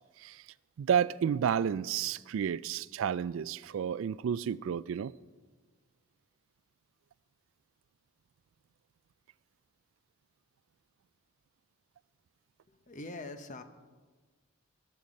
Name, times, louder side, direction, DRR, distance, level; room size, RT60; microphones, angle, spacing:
voice 1, 0.8-5.1, right 8 dB, 65° right, 0.3 m, -31 dB
voice 2, 12.7-13.6, left 2 dB, 35° left, 0.9 m, -43 dB
14.5 x 13.0 x 5.3 m
head